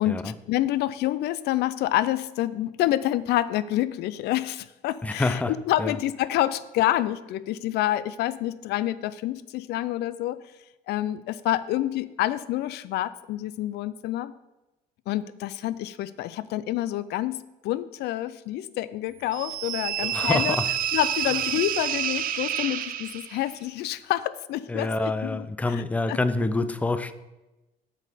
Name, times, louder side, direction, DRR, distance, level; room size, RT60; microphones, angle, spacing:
voice 1, 0.0-10.4 10.9-14.3 15.1-20.6 20.9-25.8 26.1-26.2, left 14 dB, 75° left, 16 dB, 0.4 m, -28 dB
voice 2, 5.0-5.5 5.8-5.9 20.0-20.7 24.7-27.1, left 2 dB, 10° left, 12 dB, 0.5 m, -27 dB
sound 1, 19.3-23.5, right 10 dB, 55° right, 0.6 m, -29 dB
7.6 x 7.6 x 5.0 m, 1.0 s
cardioid pair, 110°, 17 cm